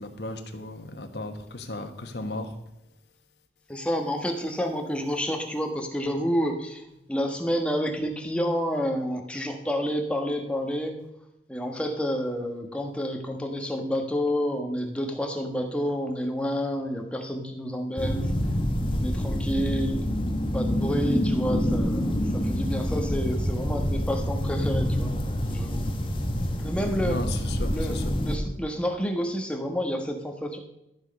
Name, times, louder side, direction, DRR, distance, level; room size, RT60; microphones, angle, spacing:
voice 1, 0.0-2.5 27.1-28.0, left 2 dB, 70° left, 6 dB, 1.5 m, -35 dB
voice 2, 3.7-11.0 11.5-18.3 18.9-20.0 20.5-25.1 25.5-25.9 26.6-27.2 27.7-30.6, equal, 5° left, 3 dB, 1.3 m, -29 dB
sound 1, 18.0-28.4, equal, 30° left, 1.3 m, -27 dB
13.5 x 6.5 x 5.3 m, 0.87 s
head